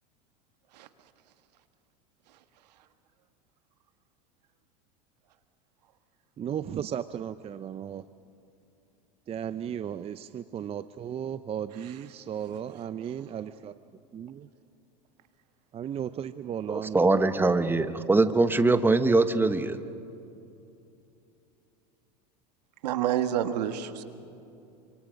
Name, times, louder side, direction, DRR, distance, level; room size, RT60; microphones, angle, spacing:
voice 1, 6.4-8.1 9.3-13.7 14.1-14.5 15.7-17.2, right 9 dB, 30° right, 13 dB, 0.6 m, -35 dB
voice 2, 16.7-19.8, right 3 dB, 10° right, 10 dB, 1.2 m, -22 dB
voice 3, 22.8-24.0, right 10 dB, 80° right, 9 dB, 1.6 m, -28 dB
28.5 x 25.5 x 5.2 m, 2.7 s
hypercardioid pair, 100°, 21 cm